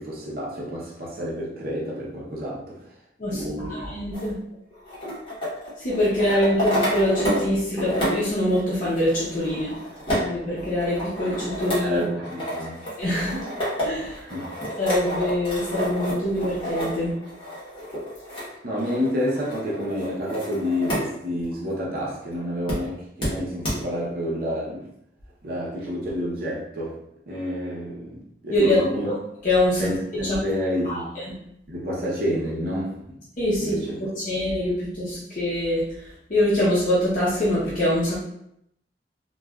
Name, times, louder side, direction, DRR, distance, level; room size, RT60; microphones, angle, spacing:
voice 1, 0.0-2.8 3.3-3.7 11.8-12.8 14.2-14.5 18.6-24.9 25.4-27.0 27.3-29.1 29.8-31.1 31.7-33.2 33.6-34.0, equal, 55° right, -4 dB, 0.7 m, -29 dB
voice 2, 3.2-4.4 5.8-9.7 10.2-12.0 13.0-13.4 13.8-14.2 14.8-17.1 28.5-29.2 29.4-30.4 30.8-31.2 33.4-33.8 34.2-38.2, left 1 dB, 45° left, -8 dB, 0.7 m, -24 dB
sound 1, 4.1-7.5 7.8-21.1 21.4-21.5 22.7-22.8 23.2-23.3 23.6-23.7, equal, 30° left, 1.0 m, -30 dB
3.1 x 2.3 x 2.3 m, 0.77 s
head